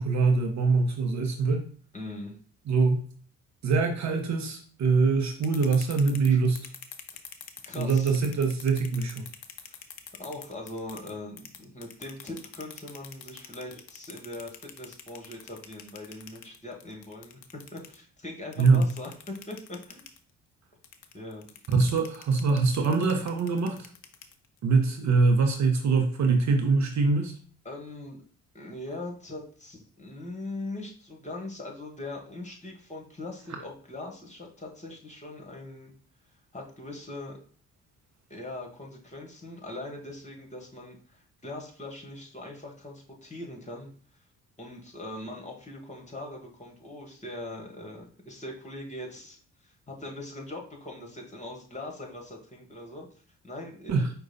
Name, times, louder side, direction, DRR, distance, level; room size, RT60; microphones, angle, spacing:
voice 1, 0.0-1.7 2.7-3.1 3.6-6.7 7.8-9.3 18.6-18.9 21.7-23.9 24.6-27.3 53.9-54.1, right 4 dB, 45° right, 4 dB, 0.8 m, -23 dB
voice 2, 1.9-2.4 7.7-8.1 9.7-9.8 10.2-17.4 17.7-19.1 19.5-20.1 21.1-21.5 27.6-28.2 28.5-35.9 36.5-37.4 38.3-43.9 44.6-49.4 49.6-53.1 53.4-54.1, left 2 dB, 20° left, 0 dB, 1.5 m, -41 dB
sound 1, 5.2-11.1 11.4-18.0 18.5-20.2 20.8-24.6, left 9 dB, 75° left, 0.6 m, -45 dB
4.8 x 2.3 x 4.1 m, 0.43 s
figure-of-eight pair, 40°, 38 cm